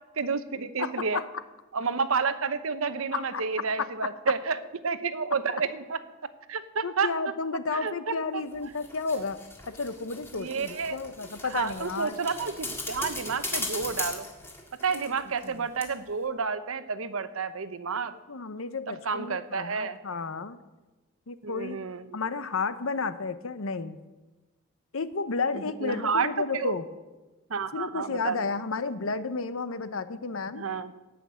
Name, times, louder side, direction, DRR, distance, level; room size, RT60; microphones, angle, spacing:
voice 1, 0.2-1.2 1.7-6.0 6.5-7.1 7.7-8.4 10.3-11.0 11.5-14.3 14.8-18.2 18.9-20.0 21.4-22.1 25.5-26.3 26.5-26.7 27.5-28.5 30.5-30.9, right 5 dB, 80° right, 13 dB, 0.8 m, -30 dB
voice 2, 0.8-1.3 3.1-3.4 3.8-3.9 5.5-5.6 6.8-9.4 9.7-12.2 14.9-15.1 15.4-15.6 18.3-20.6 21.3-21.8 22.1-24.0 24.9-26.9 27.7-30.7, left 4 dB, 80° left, 13 dB, 0.8 m, -32 dB
sound 1, 8.5-15.5 15.8-15.9, left 2 dB, 10° left, 1.8 m, -38 dB
17.5 x 6.0 x 8.5 m, 1.2 s
head